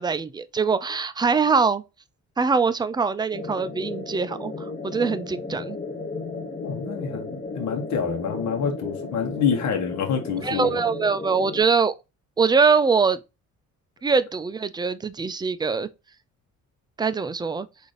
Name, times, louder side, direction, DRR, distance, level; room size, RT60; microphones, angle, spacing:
voice 1, 0.0-1.8 2.4-4.5 4.8-5.8 10.4-11.9 12.4-13.2 14.0-15.9 17.0-17.7, right 5 dB, 15° right, 0.3 m, -23 dB
sound 1, 3.3-11.6, left 3 dB, 30° left, 1.1 m, -34 dB
voice 2, 6.6-10.8, left 6 dB, 65° left, 1.0 m, -27 dB
3.8 x 2.6 x 3.2 m
cardioid pair, 90°, 30 cm